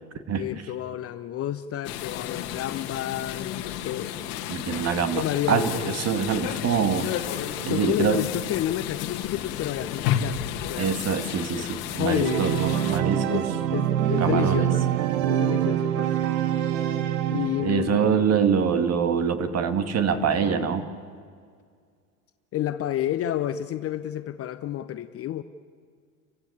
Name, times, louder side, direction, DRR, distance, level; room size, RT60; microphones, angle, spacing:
voice 1, 0.4-4.2 5.1-6.0 7.7-11.0 12.0-12.8 13.3-14.8 15.3-16.2 17.3-18.4 22.5-25.4, left 11 dB, 30° left, 12 dB, 0.8 m, -30 dB
sound 1, 1.8-13.0, left 10 dB, 50° left, 1.7 m, -32 dB
voice 2, 4.5-7.4 7.7-8.3 10.8-13.4 14.2-14.7 17.6-20.8, right 6 dB, 30° right, 9 dB, 2.1 m, -25 dB
Organ, 12.2-18.0, right 10 dB, 60° right, 1.6 m, -25 dB
30.0 x 15.5 x 8.5 m, 2.1 s
hypercardioid pair, 85°, 47 cm